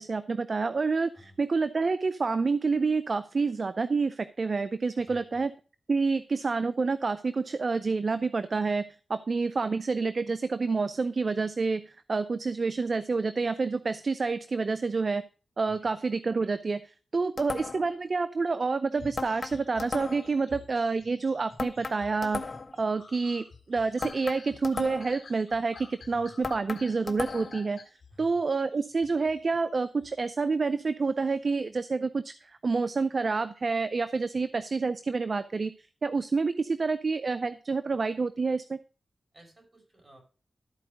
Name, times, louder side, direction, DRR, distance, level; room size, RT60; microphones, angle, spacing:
voice 1, 0.0-5.5 5.9-8.8 9.1-15.2 15.6-22.4 22.8-27.8 28.2-35.7 36.0-38.8, right 4 dB, 60° right, 14 dB, 0.5 m, -28 dB
voice 2, 4.9-5.4 15.7-15.9 26.1-26.4 28.1-28.4 39.3-40.2, equal, 40° right, 2 dB, 5.6 m, -53 dB
sound 1, 17.4-18.0 19.2-20.4 21.6-22.8 24.0-25.2 26.4-27.7, left 3 dB, 50° left, 1.2 m, -36 dB
sound 2, 18.9-30.2 31.0-31.3, left 4 dB, 80° left, 1.7 m, -51 dB
13.0 x 4.7 x 5.1 m, 0.36 s
cardioid pair, 40°, 0 cm